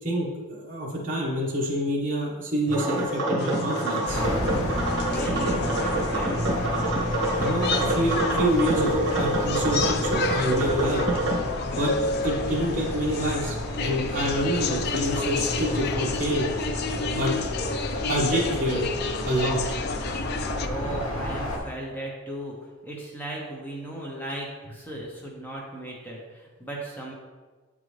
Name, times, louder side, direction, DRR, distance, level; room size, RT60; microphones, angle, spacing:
voice 1, 0.0-4.2 7.4-11.0 11.6-11.9 12.2-16.5 17.1-17.3 18.1-18.8 19.2-19.6, equal, 35° right, -5 dB, 1.1 m, -27 dB
sound 1, 2.7-11.4, right 1 dB, 55° right, 1.6 m, -27 dB
sound 2, 3.4-20.7, left 5 dB, 45° left, 0.3 m, -32 dB
sound 3, 4.1-21.6, left 1 dB, 70° left, 1.0 m, -32 dB
voice 2, 5.0-6.4 20.6-22.6 22.8-27.1, right 1 dB, 10° left, -3 dB, 0.7 m, -36 dB
8.0 x 3.8 x 3.2 m, 1.3 s
head